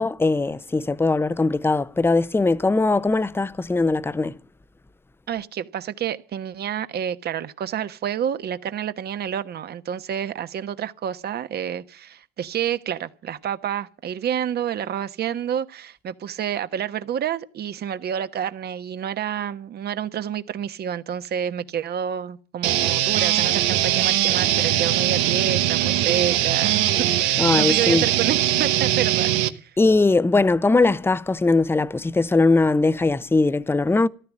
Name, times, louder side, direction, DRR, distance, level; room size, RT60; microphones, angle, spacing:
voice 1, 0.0-4.3 27.4-28.0 29.8-34.1, left 3 dB, 10° left, 0.7 m, -20 dB
voice 2, 5.3-29.3 29.6-29.7, right 9 dB, 50° right, 1.2 m, -29 dB
sound 1, 22.6-29.5, right 13 dB, 90° right, 1.0 m, -21 dB
14.5 x 12.5 x 7.4 m
supercardioid pair, 85°, 21 cm